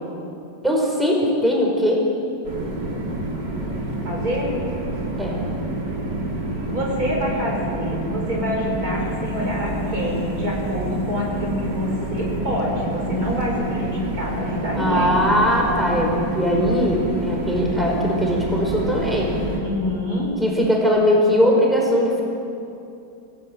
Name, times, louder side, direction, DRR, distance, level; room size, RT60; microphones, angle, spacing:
voice 1, 0.6-2.0 5.2-5.4 14.7-19.3 20.4-22.2, equal, ahead, -1 dB, 4.8 m, -20 dB
sound 1, 2.4-19.6, right 1 dB, 75° right, 4.1 m, -28 dB
voice 2, 4.0-4.5 6.7-15.2 19.6-20.3, left 1 dB, 55° right, -2 dB, 6.2 m, -26 dB
28.0 x 17.5 x 9.2 m, 2.7 s
omnidirectional pair, 1.9 m